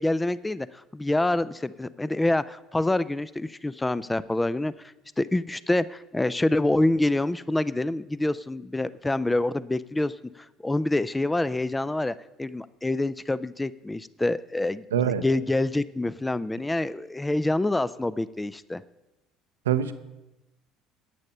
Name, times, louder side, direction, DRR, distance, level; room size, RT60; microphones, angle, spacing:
voice 1, 0.0-14.8 15.2-18.8, left 2 dB, 10° left, 17 dB, 0.4 m, -26 dB
voice 2, 14.9-15.2 19.7-19.9, right 9 dB, 85° right, 11 dB, 0.6 m, -24 dB
10.5 x 8.9 x 5.5 m, 0.99 s
hypercardioid pair, 60°, 0 cm